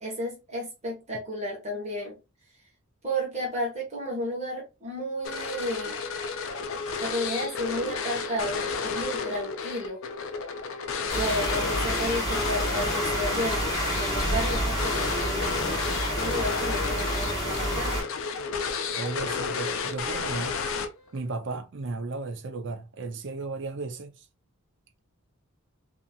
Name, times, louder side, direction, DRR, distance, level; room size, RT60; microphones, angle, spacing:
voice 1, 0.0-2.2 3.0-6.0 7.0-10.0 11.1-13.7 14.0-15.7 16.1-18.0, equal, 30° right, 1.0 m, -32 dB
sound 1, 5.2-21.2, left 5 dB, 65° left, 0.5 m, -32 dB
sound 2, 11.1-18.0, equal, 20° left, 1.1 m, -29 dB
voice 2, 19.0-20.7 21.1-24.3, right 3 dB, 55° right, 0.5 m, -35 dB
2.7 x 2.7 x 2.2 m
head